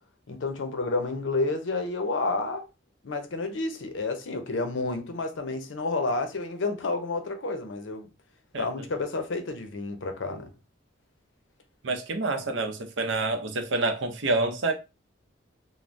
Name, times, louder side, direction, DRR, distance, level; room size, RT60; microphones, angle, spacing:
voice 1, 0.3-2.7 3.0-8.1 8.6-10.5, left 3 dB, 70° left, 0.5 m, -30 dB
voice 2, 11.8-14.7, right 2 dB, 70° right, 0.6 m, -27 dB
3.2 x 2.0 x 2.5 m
head